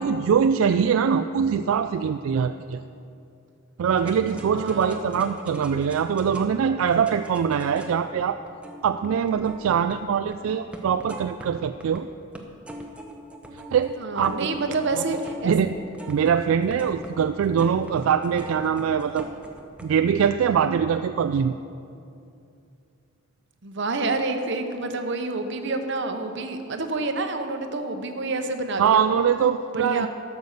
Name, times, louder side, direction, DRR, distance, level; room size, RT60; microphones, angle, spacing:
voice 1, 0.0-2.8 3.8-8.4 8.8-12.1 13.5-14.4 14.7-15.0 15.4-15.7 16.1-19.3 19.8-21.6 28.8-30.1, right 7 dB, 80° right, 9 dB, 0.3 m, -23 dB
sound 1, 4.0-10.4 10.7-12.0 12.3-19.9, equal, 5° right, 0.8 m, -42 dB
voice 2, 4.4-5.0 14.0-15.5 23.6-29.1 29.7-30.1, right 3 dB, 60° right, 6 dB, 0.9 m, -28 dB
12.0 x 6.9 x 6.6 m, 2.6 s
head